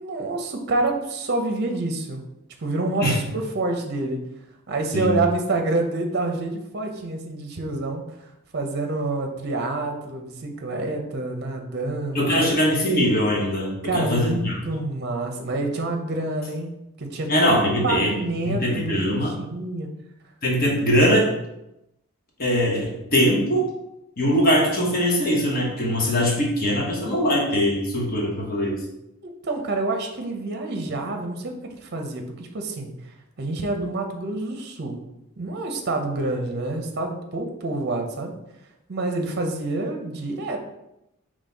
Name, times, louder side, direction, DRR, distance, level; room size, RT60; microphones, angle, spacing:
voice 1, 0.0-2.2 2.6-4.2 4.7-8.3 8.5-12.5 13.8-14.4 14.7-16.7 17.0-17.4 17.8-19.9 29.2-35.0 35.4-38.3 38.9-40.6, right 2 dB, 50° right, 4 dB, 0.6 m, -27 dB
voice 2, 12.1-14.5 17.3-18.1 18.4-19.3 20.4-21.3 22.4-23.7 24.2-28.8, equal, 40° left, -2 dB, 1.1 m, -21 dB
3.9 x 3.1 x 4.0 m, 0.87 s
head